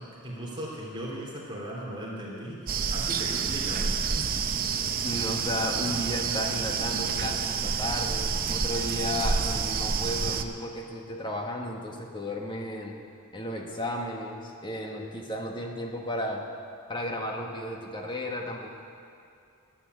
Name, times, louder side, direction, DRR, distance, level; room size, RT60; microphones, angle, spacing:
voice 1, 0.0-4.2, right 1 dB, 20° right, -5 dB, 3.3 m, -38 dB
sound 1, 2.7-10.4, right 6 dB, 40° right, 0.7 m, -29 dB
voice 2, 4.8-12.9 13.3-16.4 16.9-18.7, left 1 dB, 20° left, 1 dB, 1.5 m, -34 dB
12.5 x 8.9 x 9.5 m, 2.5 s
head